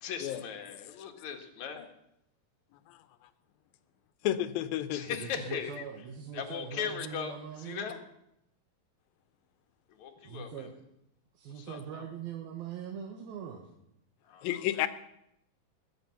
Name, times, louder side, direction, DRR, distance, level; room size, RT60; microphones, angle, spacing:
voice 1, 0.0-1.9 4.9-5.8 6.3-8.0 9.9-10.7 11.5-12.0 14.2-14.9, left 7 dB, 60° left, 5 dB, 2.8 m, -39 dB
voice 2, 4.2-5.0 14.4-14.9, left 12 dB, 80° left, 13 dB, 2.6 m, -30 dB
voice 3, 5.0-7.9 10.2-10.7 11.3-13.7, right 8 dB, 85° right, 3 dB, 3.2 m, -42 dB
20.0 x 8.7 x 7.0 m, 0.80 s
omnidirectional pair, 4.1 m